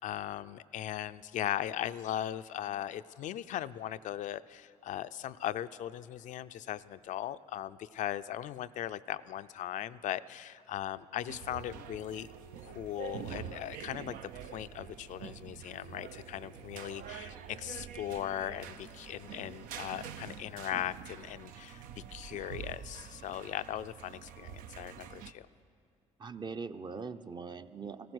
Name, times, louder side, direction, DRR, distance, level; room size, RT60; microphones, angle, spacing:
voice 1, 0.0-12.3 12.6-14.1 14.4-25.5, left 12 dB, 70° left, 12 dB, 0.4 m, -38 dB
sound 1, 11.3-25.3, right 8 dB, 85° right, 0.5 m, -46 dB
voice 2, 26.2-28.1, right 5 dB, 35° right, 10 dB, 0.6 m, -41 dB
15.5 x 14.0 x 6.2 m, 2.4 s
supercardioid pair, 70°, 14 cm